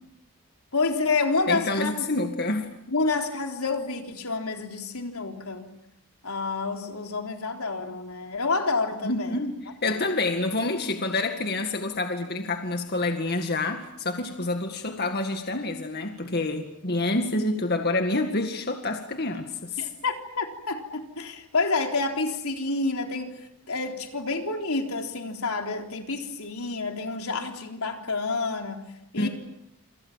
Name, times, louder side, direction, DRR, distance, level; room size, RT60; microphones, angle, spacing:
voice 1, 0.7-2.3 2.9-5.7 6.2-9.4 9.8-10.1 19.8-28.8 29.1-29.3, left 3 dB, 80° left, 4 dB, 3.8 m, -29 dB
voice 2, 1.5-2.7 9.0-19.9 29.2-29.3, left 2 dB, 45° left, 5 dB, 2.0 m, -28 dB
28.5 x 27.5 x 7.5 m, 0.81 s
head